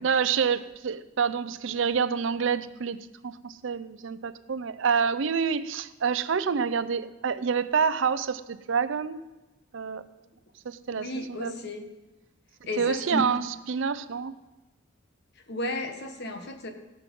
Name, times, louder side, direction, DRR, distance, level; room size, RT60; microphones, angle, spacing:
voice 1, 0.0-9.3 9.7-10.1 10.6-11.5 12.8-13.4 13.7-14.3, right 6 dB, 65° right, 14 dB, 0.5 m, -27 dB
voice 2, 10.9-11.9 12.6-13.2 15.5-16.7, left 1 dB, 55° left, 5 dB, 1.3 m, -33 dB
17.5 x 5.9 x 5.3 m, 1.1 s
head